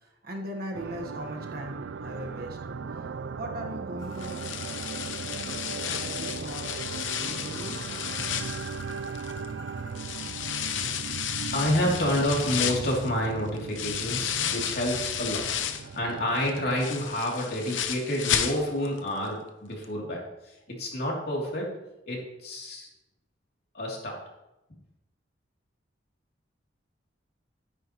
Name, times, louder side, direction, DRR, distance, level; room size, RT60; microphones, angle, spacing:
voice 1, 0.0-3.1 3.3-4.4 5.8-6.8 7.2-7.8 8.2-8.3, equal, 50° right, 1 dB, 1.4 m, -39 dB
sound 1, 0.7-17.2, right 5 dB, 80° right, 0.4 m, -38 dB
Bird, 4.0-10.1, left 2 dB, 20° left, 2.2 m, -48 dB
sound 2, 4.2-9.5 9.9-15.9 16.3-19.0 19.3-19.4 19.8-19.9, left 9 dB, 80° left, 0.8 m, -32 dB
voice 2, 11.3-21.7 22.1-22.9 23.7-24.2, left 1 dB, 55° left, -2 dB, 3.0 m, -29 dB
12.5 x 9.7 x 3.1 m, 0.94 s
head